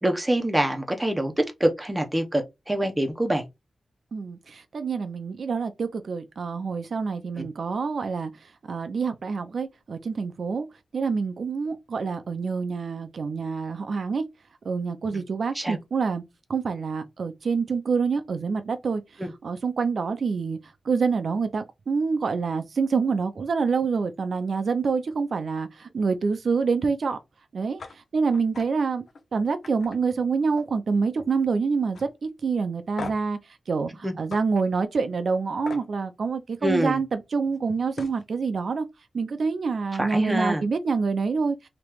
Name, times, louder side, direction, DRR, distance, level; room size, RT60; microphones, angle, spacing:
voice 1, 0.0-3.5 7.4-7.5 15.1-15.2 15.6-15.8 19.2-19.3 34.0-34.2 36.6-37.0 40.0-40.6, right 1 dB, 10° right, 0.7 m, -25 dB
voice 2, 4.1-8.3 8.7-10.7 10.9-14.2 14.6-16.2 16.5-19.0 19.4-20.6 20.9-27.2 27.5-27.8 28.1-29.0 29.3-33.4 33.7-38.9 39.1-41.6, right 5 dB, 65° right, 0.5 m, -26 dB
sound 1, 27.8-28.0 28.3-28.7 29.1-29.2 29.6-30.8 31.1-31.5 31.9-32.1 33.0-33.3 34.3-34.4 35.7-35.9 37.5-37.6 37.9-38.2, left 4 dB, 75° left, 0.6 m, -39 dB
3.0 x 2.9 x 3.4 m
wide cardioid pair, 110°, 0 cm